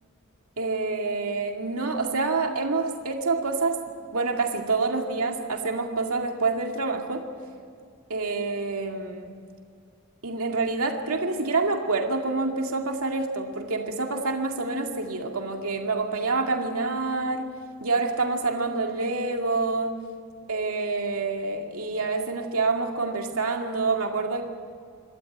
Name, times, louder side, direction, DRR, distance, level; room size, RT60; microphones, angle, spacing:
voice 1, 0.6-7.3 8.1-9.3 10.2-17.5 17.8-20.0 20.5-24.4, right 3 dB, 85° right, 2 dB, 2.2 m, -27 dB
26.5 x 13.0 x 9.2 m, 2.2 s
head